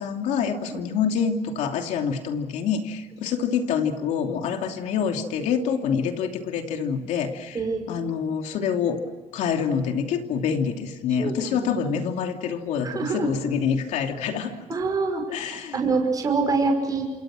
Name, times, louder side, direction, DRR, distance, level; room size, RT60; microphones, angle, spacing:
voice 1, 0.0-7.6 7.9-9.0 9.3-14.5 15.3-15.8, left 7 dB, 85° left, 4 dB, 2.8 m, -26 dB
voice 2, 7.5-7.9 11.2-11.6 12.8-13.5 14.7-15.2 15.7-17.1, right 4 dB, 30° right, 1 dB, 5.7 m, -25 dB
29.0 x 27.5 x 6.3 m, 1.4 s
cardioid pair, 135°, 12 cm